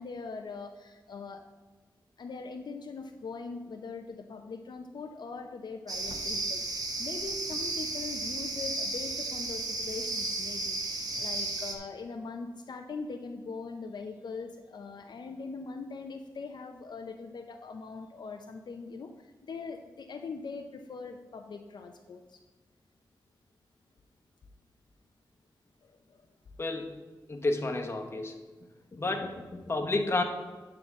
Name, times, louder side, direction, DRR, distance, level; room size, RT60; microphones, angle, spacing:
voice 1, 0.0-1.4 2.2-22.4 25.8-26.3, left 4 dB, 70° left, 4 dB, 0.5 m, -41 dB
sound 1, 5.9-11.7, right 2 dB, 55° right, 1.2 m, -34 dB
voice 2, 26.6-26.9 27.3-28.4 28.9-30.2, left 2 dB, 35° left, 2 dB, 1.0 m, -31 dB
9.3 x 3.8 x 7.1 m, 1.3 s
wide cardioid pair, 115°, 8 cm